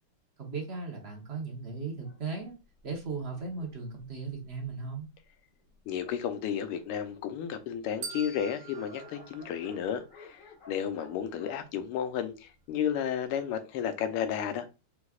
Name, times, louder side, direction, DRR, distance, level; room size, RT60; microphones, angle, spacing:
voice 1, 0.4-2.5 2.8-5.1, right 4 dB, 45° right, 0.8 m, -37 dB
Dog, 2.0-5.0 5.7-5.8 6.0-6.1 6.3-12.7, left 3 dB, 55° left, 2.0 m, -54 dB
voice 2, 5.9-14.7, left 8 dB, 90° left, 1.6 m, -33 dB
sound 1, 8.0-10.3, right 5 dB, 80° right, 0.6 m, -44 dB
5.1 x 3.5 x 2.3 m
omnidirectional pair, 2.4 m